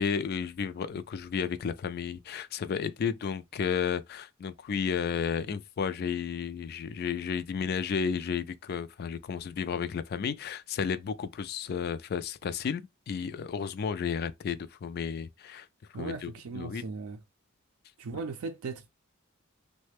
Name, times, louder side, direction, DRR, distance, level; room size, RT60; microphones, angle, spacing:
voice 1, 0.0-15.7 15.9-16.8 18.1-18.2, left 6 dB, 45° left, 0.3 m, -32 dB
voice 2, 15.9-17.2 18.0-18.9, right 4 dB, 75° right, 0.4 m, -37 dB
3.1 x 2.1 x 3.3 m
head